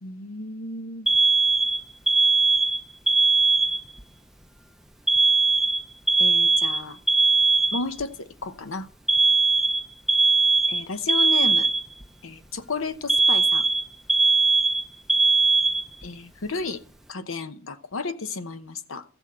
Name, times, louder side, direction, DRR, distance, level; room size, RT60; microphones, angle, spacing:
voice 1, 0.0-1.1 6.2-7.0 7.7-8.9 10.7-11.7 12.2-13.7 16.0-16.8 17.1-19.0, left 4 dB, 75° left, 0.9 m, -32 dB
Alarm, 1.1-4.0 5.1-8.0 9.1-12.1 13.1-16.1, right 3 dB, ahead, 0.5 m, -20 dB
14.5 x 6.3 x 7.5 m
head